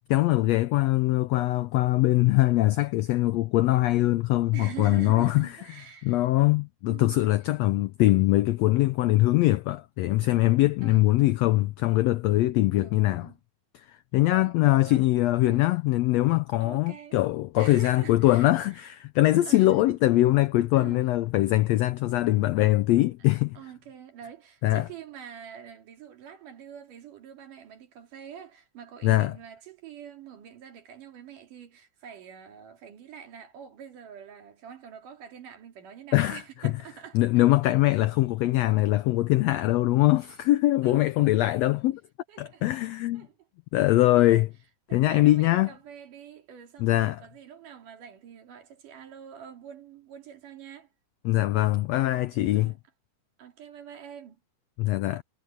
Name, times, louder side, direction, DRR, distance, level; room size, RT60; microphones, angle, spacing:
voice 1, 0.1-5.5 6.0-13.3 13.9-23.6 24.6-24.8 29.0-29.3 36.1-36.7 37.1-42.0 42.4-43.3 43.7-44.5 44.9-45.7 46.8-47.2 51.2-52.7 54.8-55.2, left 17 dB, 85° left, 1.5 m, -22 dB
voice 2, 4.5-6.3 6.9-7.2 10.8-11.1 12.7-13.4 14.3-14.6 14.8-15.1 15.4-15.8 16.6-17.2 17.6-18.9 19.5-19.8 20.7-21.1 23.2-37.2 39.4-39.7 40.8-41.8 42.3-42.8 43.1-43.5 43.9-44.4 44.9-50.9 52.6-52.8 53.4-54.4, right 9 dB, 85° right, 4.1 m, -45 dB
omnidirectional pair, 3.6 m